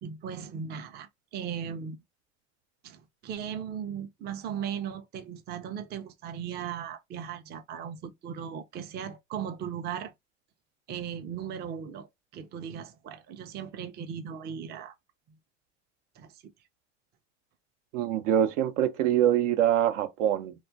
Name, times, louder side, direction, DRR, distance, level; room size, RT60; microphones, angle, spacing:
voice 1, 0.0-2.0 2.8-10.1 10.9-12.1 12.3-14.9 16.2-16.4, right 8 dB, 25° right, 0.4 m, -37 dB
voice 2, 17.9-20.5, right 11 dB, 75° right, 0.6 m, -24 dB
2.3 x 2.2 x 2.6 m
hypercardioid pair, 85°, 37 cm